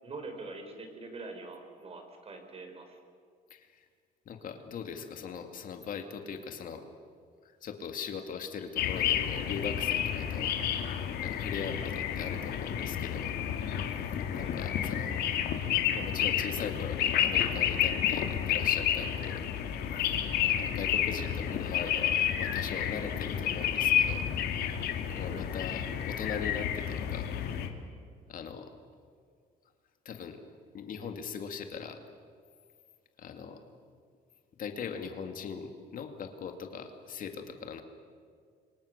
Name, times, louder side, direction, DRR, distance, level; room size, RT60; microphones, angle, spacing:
voice 1, 0.0-3.0 14.3-14.6 25.3-25.5, right 3 dB, 35° right, 5 dB, 4.8 m, -44 dB
voice 2, 3.5-3.9 4.3-6.8 7.4-10.5 11.2-13.3 14.3-15.2 15.9-19.4 20.4-24.2 25.1-27.3 28.3-28.7 30.0-30.4 30.7-32.0 33.2-33.6 34.6-37.8, left 6 dB, 55° left, 5 dB, 2.3 m, -40 dB
sound 1, 8.8-27.7, left 9 dB, 75° left, 2.3 m, -30 dB
28.5 x 24.5 x 6.7 m, 2.1 s
cardioid pair, 110°, 17 cm